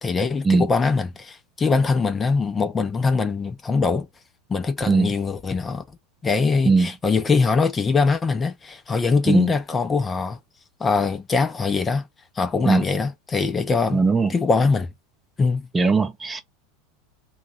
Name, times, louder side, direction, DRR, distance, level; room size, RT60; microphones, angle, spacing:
voice 1, 0.0-4.1 4.5-5.8 6.2-10.4 10.8-12.1 12.4-14.0 14.3-14.9 15.4-15.7, left 4 dB, 20° left, 0.6 m, -22 dB
voice 2, 13.9-14.3 15.7-16.4, right 4 dB, 15° right, 0.6 m, -19 dB
2.9 x 2.3 x 3.9 m
hypercardioid pair, 100°, 0 cm